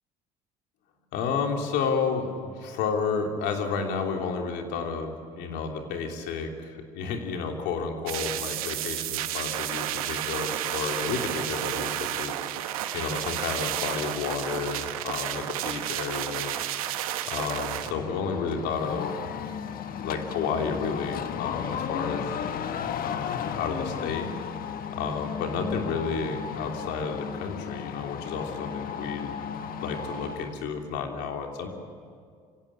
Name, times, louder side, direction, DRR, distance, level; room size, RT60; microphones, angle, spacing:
voice 1, 1.1-12.4 12.9-16.6 17.3-19.1 19.9-22.3 23.0-24.3 25.0-29.3 29.8-31.7, left 5 dB, 70° left, 3 dB, 3.2 m, -31 dB
sound 1, 8.1-17.9, right 12 dB, 90° right, 1.2 m, -31 dB
sound 2, 17.8-30.6, left 7 dB, 55° left, 1.5 m, -34 dB
24.5 x 17.0 x 10.0 m, 2.1 s
hypercardioid pair, 70°, 18 cm